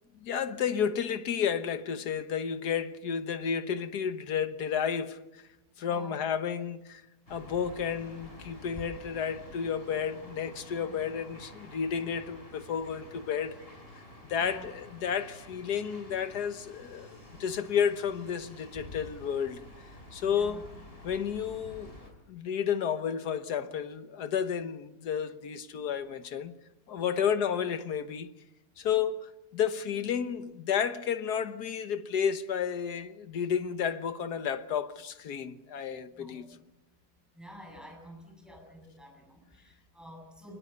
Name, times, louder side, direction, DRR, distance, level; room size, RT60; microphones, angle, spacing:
voice 1, 0.2-5.4 5.8-7.0 7.3-13.6 14.3-19.6 20.1-20.7 21.0-26.5 26.9-28.3 28.8-36.6, left 7 dB, 65° left, 1.7 m, -32 dB
voice 2, 5.8-6.2 10.9-11.0 14.4-14.7 20.2-20.6 27.1-27.3 36.2-36.5 37.3-40.6, equal, ahead, 7.5 m, -50 dB
sound 1, 7.3-22.1, left 1 dB, 30° left, 5.2 m, -49 dB
25.0 x 20.5 x 6.9 m
omnidirectional pair, 1.9 m